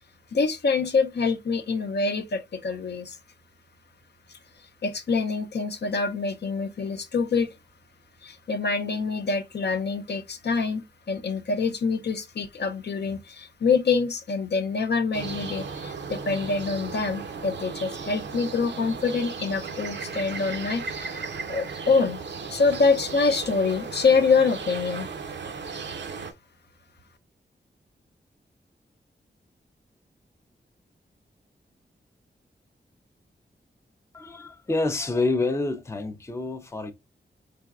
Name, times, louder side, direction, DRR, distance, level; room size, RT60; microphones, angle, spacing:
voice 1, 0.3-3.2 4.8-7.5 8.2-21.2 21.5-22.2 22.5-25.1, left 4 dB, 65° left, 0.6 m, -25 dB
sound 1, 15.1-26.3, right 5 dB, 75° right, 0.6 m, -36 dB
voice 2, 34.1-36.9, left 3 dB, 15° left, 0.5 m, -27 dB
3.9 x 3.4 x 2.3 m
wide cardioid pair, 95°, 19 cm